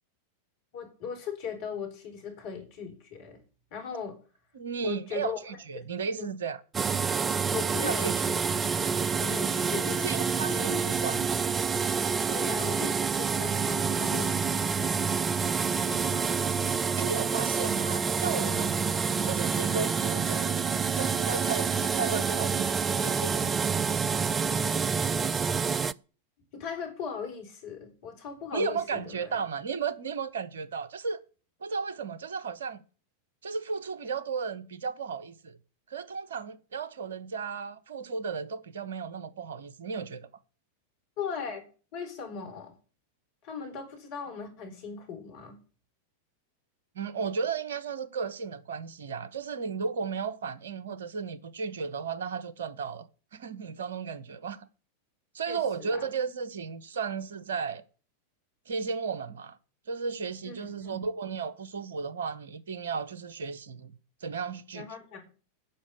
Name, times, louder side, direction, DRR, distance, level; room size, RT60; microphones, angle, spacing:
voice 1, 0.7-3.4 3.7-4.2 4.8-5.9 6.2-6.3 7.5-10.1 10.5-11.3 12.3-15.1 15.7-16.4 26.5-29.4 41.2-41.6 41.9-42.8 43.4-45.6 55.5-56.1 60.4-61.0 64.7-65.3, left 6 dB, 45° left, 4.1 m, -39 dB
voice 2, 4.5-6.6 7.8-8.2 10.0-11.2 17.0-18.8 19.2-20.6 21.0-23.7 28.5-31.2 31.6-32.8 33.4-35.6 35.9-40.3 46.9-53.1 53.3-54.7 55.3-57.8 58.7-59.6 59.9-63.9 64.2-64.9, right 5 dB, 65° right, 1.0 m, -34 dB
sound 1, 6.7-25.9, right 5 dB, 20° right, 0.4 m, -28 dB
10.0 x 6.3 x 8.3 m
figure-of-eight pair, 90°, 0 cm